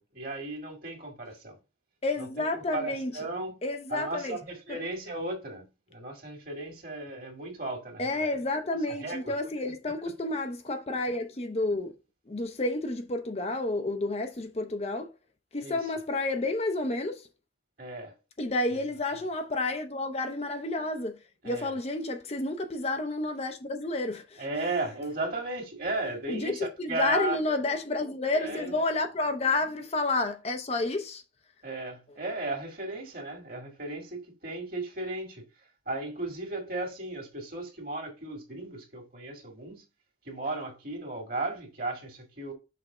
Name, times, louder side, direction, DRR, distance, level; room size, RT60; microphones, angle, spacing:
voice 1, 0.0-1.5 2.2-2.4 2.7-3.6 3.9-8.3 9.0-9.3 15.6-15.8 17.8-18.1 18.7-18.8 21.4-21.7 24.4-27.4 28.4-28.9 31.6-35.4 35.9-39.8 40.3-42.5, right 2 dB, 50° right, 1.9 m, -35 dB
voice 2, 2.0-3.1 3.6-4.4 4.7-4.8 8.0-11.9 12.3-15.1 15.5-17.3 18.4-21.2 21.4-24.7 26.3-31.2, left 2 dB, 35° left, 0.6 m, -30 dB
6.0 x 3.3 x 4.8 m
head